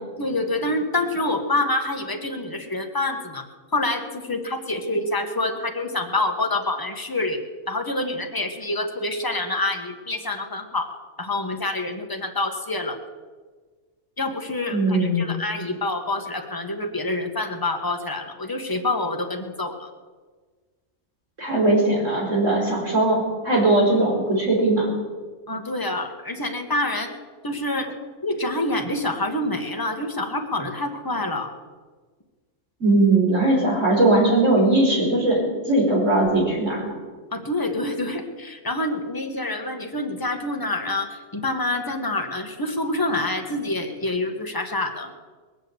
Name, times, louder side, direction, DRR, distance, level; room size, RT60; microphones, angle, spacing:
voice 1, 0.2-3.4 3.7-7.4 7.7-10.9 11.2-13.0 14.2-19.9 25.5-27.1 27.4-27.9 28.2-31.5 37.3-45.1, left 2 dB, 15° left, 3 dB, 1.5 m, -27 dB
voice 2, 14.7-15.3 21.4-24.9 32.8-36.9, right 2 dB, 80° right, -2 dB, 5.2 m, -19 dB
21.5 x 7.7 x 8.0 m, 1.4 s
omnidirectional pair, 1.3 m